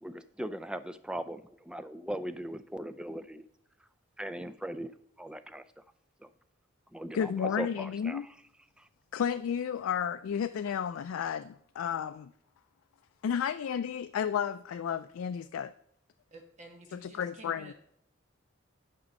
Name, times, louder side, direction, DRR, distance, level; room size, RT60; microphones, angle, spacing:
voice 1, 0.0-3.4 4.2-5.7 6.2-6.3 6.9-8.2 8.8-8.9, right 1 dB, 5° right, 12 dB, 0.3 m, -39 dB
voice 2, 7.1-8.3 9.1-12.3 13.2-15.7 16.9-17.7, left 8 dB, 85° left, 10 dB, 0.3 m, -32 dB
voice 3, 16.3-17.7, right 1 dB, 35° right, 4 dB, 1.3 m, -51 dB
8.6 x 5.2 x 5.2 m, 0.72 s
head